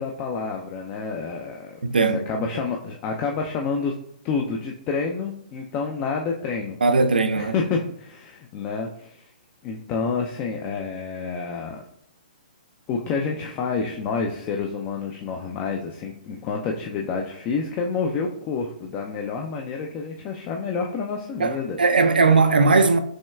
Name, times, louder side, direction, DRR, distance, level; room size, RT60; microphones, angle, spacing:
voice 1, 0.0-1.8 2.1-3.9 4.2-6.8 7.3-9.3 9.6-11.8 12.9-21.8 22.2-22.3, left 5 dB, 30° left, 0.3 m, -28 dB
voice 2, 1.8-2.2 6.8-7.6 21.4-23.0, right 4 dB, 85° right, 0.4 m, -18 dB
6.1 x 2.2 x 2.3 m
hypercardioid pair, 125°, 5 cm